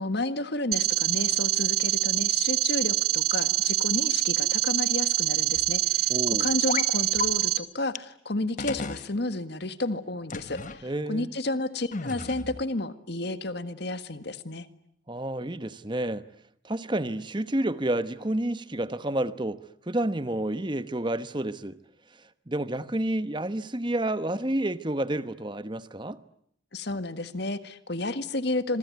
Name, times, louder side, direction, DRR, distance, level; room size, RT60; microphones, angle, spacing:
voice 1, 0.0-6.1 6.4-14.7 26.7-28.8, left 2 dB, 55° left, 1.7 m, -31 dB
sound 1, 0.7-7.6, right 14 dB, 50° right, 2.0 m, -25 dB
sound 2, 1.3-1.6 2.8-2.9 4.1-4.3 5.5-6.0 6.4-6.5 7.0-7.6 8.2-8.3 8.6-8.7 9.0-9.3, equal, 5° left, 7.4 m, -52 dB
voice 2, 6.1-6.5 10.8-11.3 15.1-16.3 16.6-19.6 19.9-21.8 22.5-26.2, right 1 dB, 25° right, 1.1 m, -29 dB
sound 3, 6.7-6.9 7.2-7.3 7.9-8.0 8.6-9.1 10.3-10.8 11.9-12.6, left 4 dB, 40° left, 1.2 m, -33 dB
26.5 x 23.5 x 9.4 m
head